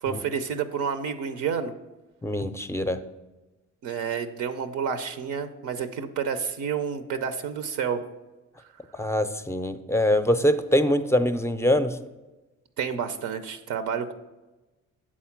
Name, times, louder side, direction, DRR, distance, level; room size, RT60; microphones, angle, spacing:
voice 1, 0.0-1.7 3.8-8.0 12.8-14.1, right 7 dB, 80° right, 9 dB, 0.6 m, -29 dB
voice 2, 2.2-3.0 8.9-12.0, left 1 dB, 10° left, 9 dB, 0.5 m, -23 dB
7.4 x 4.2 x 5.8 m, 1.1 s
cardioid pair, 90°, 30 cm